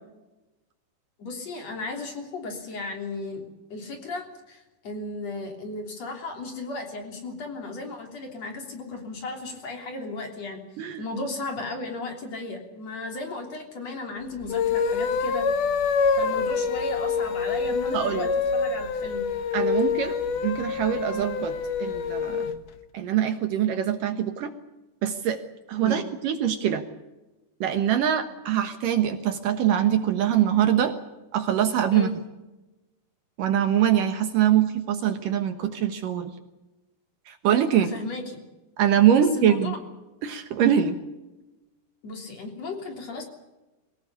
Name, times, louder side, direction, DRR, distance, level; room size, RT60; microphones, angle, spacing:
voice 1, 1.2-3.4 3.7-10.6 11.0-15.5 16.1-19.2 25.8-26.0 31.9-32.1 37.7-38.4 39.1-39.8 42.0-43.2, left 2 dB, 45° left, 3 dB, 4.2 m, -35 dB
sound 1, 14.4-22.6, left 5 dB, 65° left, 2.5 m, -26 dB
voice 2, 17.9-18.3 19.5-20.2 20.4-22.5 22.9-24.5 25.0-25.4 25.7-26.8 27.6-31.0 31.3-32.1 33.4-36.3 37.3-37.9 38.8-39.8 40.2-41.0, right 10 dB, 65° right, 7 dB, 2.6 m, -23 dB
23.0 x 18.5 x 8.6 m, 1.1 s
omnidirectional pair, 4.6 m